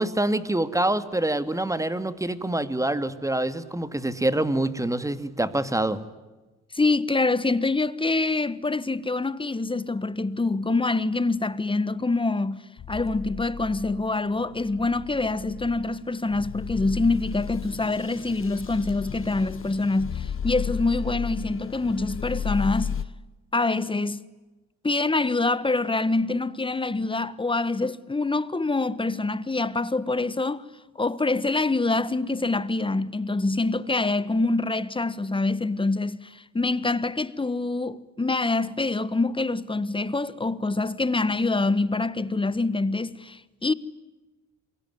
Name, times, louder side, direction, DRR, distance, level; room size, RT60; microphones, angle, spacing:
voice 1, 0.0-6.0, right 1 dB, 10° right, 2.3 m, -26 dB
voice 2, 6.7-12.6 12.9-23.0 23.5-24.2 24.8-30.6 30.9-43.7, left 3 dB, 15° left, 1.4 m, -25 dB
sound 1, 12.8-23.0, left 7 dB, 45° left, 1.3 m, -34 dB
28.0 x 22.5 x 9.5 m
cardioid pair, 90°, 30 cm